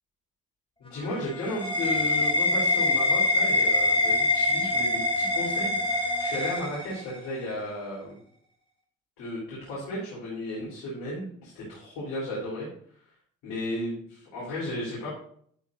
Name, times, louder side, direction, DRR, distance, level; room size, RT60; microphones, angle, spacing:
voice 1, 0.8-8.2 9.2-12.7 13.4-15.1, left 1 dB, 70° left, -7 dB, 3.9 m, -34 dB
sound 1, 0.9-7.3, left 2 dB, 15° left, 2.7 m, -25 dB
11.0 x 8.4 x 2.7 m, 0.63 s
hypercardioid pair, 45°, 35 cm